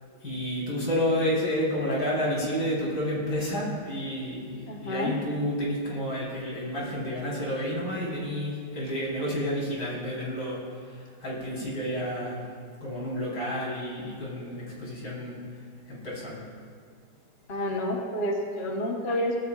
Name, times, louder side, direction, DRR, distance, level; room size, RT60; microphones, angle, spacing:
voice 1, 0.2-10.6 10.9-12.4 12.8-15.4 15.9-16.4, equal, 75° left, -5 dB, 4.8 m, -30 dB
voice 2, 4.7-5.2 17.5-19.4, left 1 dB, 40° left, 0 dB, 1.4 m, -29 dB
23.0 x 16.0 x 2.5 m, 2.1 s
omnidirectional pair, 1.8 m